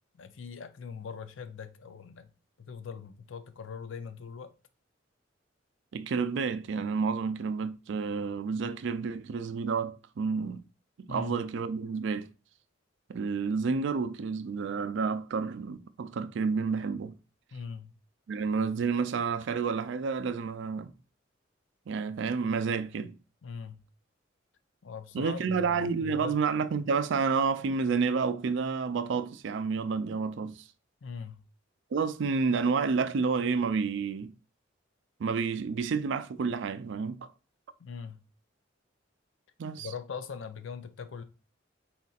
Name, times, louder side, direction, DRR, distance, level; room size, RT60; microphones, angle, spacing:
voice 1, 0.2-2.3 2.6-4.5 11.1-11.4 17.5-17.9 23.4-23.8 24.8-26.4 31.0-31.4 37.8-38.2 39.8-41.2, left 6 dB, 80° left, 0.5 m, -41 dB
voice 2, 5.9-10.6 11.1-12.3 13.1-17.1 18.3-20.9 21.9-23.2 25.1-30.6 31.9-34.3 35.2-37.3 39.6-39.9, right 5 dB, 70° right, 0.4 m, -30 dB
4.2 x 4.0 x 2.3 m
head